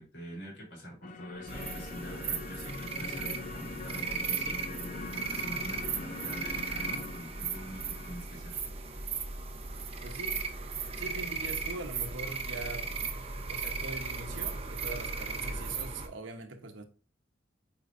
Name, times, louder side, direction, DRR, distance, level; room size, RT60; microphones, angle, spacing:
voice 1, 0.0-4.6 5.1-8.6, equal, 65° left, 3.5 m, -45 dB
sound 1, 1.0-8.2, left 3 dB, 40° left, 0.6 m, -42 dB
sound 2, 1.5-16.1, right 5 dB, 30° right, 0.8 m, -36 dB
voice 2, 10.0-10.5 11.0-12.9 13.5-16.8, right 2 dB, 80° right, 1.0 m, -42 dB
8.9 x 4.5 x 2.6 m
head